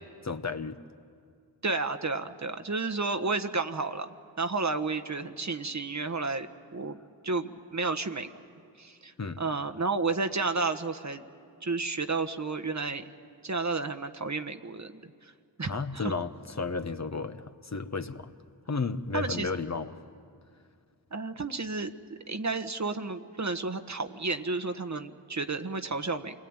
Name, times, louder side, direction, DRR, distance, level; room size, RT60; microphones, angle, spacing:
voice 1, 0.2-0.8 9.2-9.4 15.6-18.3 18.7-20.0, left 4 dB, 40° left, 8 dB, 1.2 m, -33 dB
voice 2, 1.6-4.1 4.4-7.0 7.2-8.3 8.8-11.2 11.6-13.0 13.4-14.9 15.2-15.3 15.6-16.1 19.1-19.5 21.1-26.4, right 3 dB, 40° right, 9 dB, 1.3 m, -31 dB
28.0 x 21.0 x 9.0 m, 2.3 s
cardioid pair, 45°, 43 cm